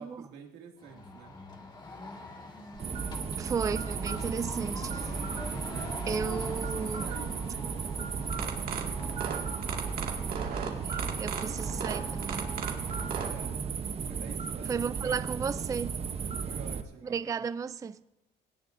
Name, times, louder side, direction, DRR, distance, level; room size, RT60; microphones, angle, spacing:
voice 1, 0.0-1.3 5.7-6.3 6.6-7.7 8.4-9.1 13.3-15.6 16.4-17.4, right 7 dB, 85° right, 2.4 m, -49 dB
sound 1, 0.8-13.6, left 2 dB, 25° left, 1.9 m, -44 dB
sound 2, 2.8-16.8, right 6 dB, 35° right, 0.9 m, -35 dB
voice 2, 3.4-5.2 6.1-7.1 10.3-12.5 14.7-15.9 17.0-18.0, right 6 dB, 20° right, 0.4 m, -34 dB
sound 3, 8.3-13.3, right 7 dB, 60° right, 2.2 m, -36 dB
18.5 x 17.5 x 2.6 m
cardioid pair, 110°, 17 cm